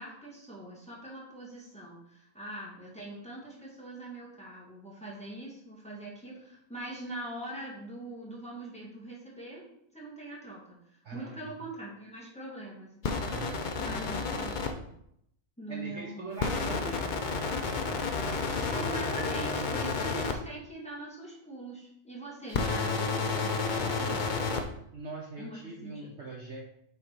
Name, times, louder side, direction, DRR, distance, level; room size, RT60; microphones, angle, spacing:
voice 1, 0.0-9.7 9.9-13.3 13.8-14.6 15.6-16.6 18.7-24.3 25.4-26.1, right 1 dB, 5° left, -5 dB, 1.8 m, -43 dB
voice 2, 11.0-11.6 13.3-13.5 15.7-17.4 24.9-26.6, right 3 dB, 55° right, -2 dB, 1.1 m, -42 dB
sound 1, 13.0-14.7 16.4-20.3 22.5-24.6, left 4 dB, 60° left, 0.5 m, -31 dB
6.6 x 3.7 x 4.6 m, 0.74 s
omnidirectional pair, 1.6 m